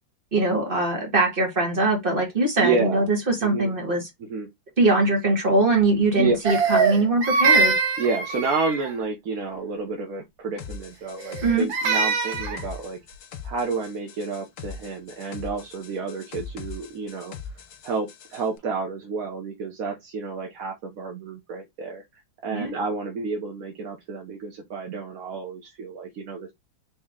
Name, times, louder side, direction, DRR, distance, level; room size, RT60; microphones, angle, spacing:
voice 1, 0.3-4.1 4.8-7.7 11.4-11.6 22.5-22.7, right 2 dB, 30° right, 1.5 m, -22 dB
voice 2, 2.6-3.0 3.4-3.7 4.3-4.5 6.1-6.3 8.0-13.0 13.4-17.3 17.8-22.0 22.4-26.5, right 4 dB, 55° right, 1.1 m, -30 dB
Crying sobbing, 6.4-9.0 11.2-12.6, right 4 dB, 80° right, 1.8 m, -23 dB
sound 1, 10.6-18.5, left 6 dB, 60° left, 1.1 m, -40 dB
4.4 x 2.9 x 3.6 m
omnidirectional pair, 2.1 m